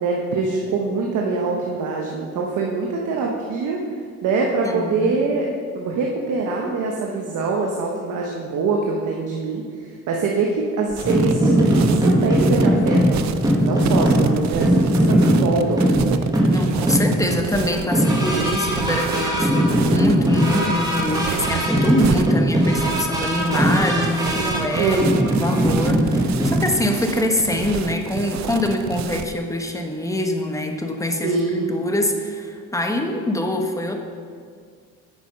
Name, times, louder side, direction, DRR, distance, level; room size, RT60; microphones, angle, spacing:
voice 1, 0.0-3.8 4.2-5.5 5.7-13.3 13.6-16.0 24.7-25.4 31.2-31.7, right 4 dB, 80° right, -1 dB, 1.1 m, -24 dB
voice 2, 4.6-5.1 16.5-34.0, left 1 dB, 10° left, 3 dB, 1.2 m, -24 dB
sound 1, 10.9-29.3, right 9 dB, 65° right, 0.6 m, -29 dB
sound 2, 11.0-26.7, equal, 10° right, 1.7 m, -20 dB
9.0 x 7.2 x 5.4 m, 2.1 s
cardioid pair, 90°, 30 cm